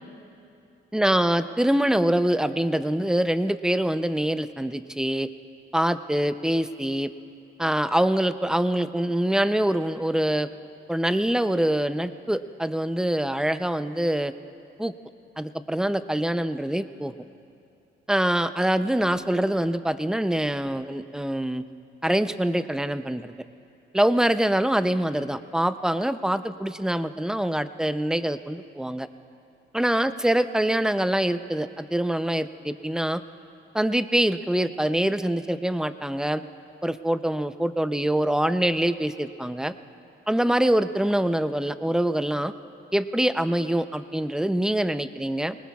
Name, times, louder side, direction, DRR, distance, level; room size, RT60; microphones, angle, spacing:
voice 1, 0.9-5.3 5.7-7.1 7.6-10.5 10.9-14.3 14.8-14.9 15.4-17.1 18.1-21.6 22.0-23.3 23.9-29.1 29.7-33.2 33.7-36.4 36.8-39.7 40.3-42.5 42.9-45.6, right 1 dB, 5° right, 11 dB, 0.5 m, -24 dB
24.5 x 19.5 x 2.4 m, 2.6 s
cardioid pair, 90°, 20 cm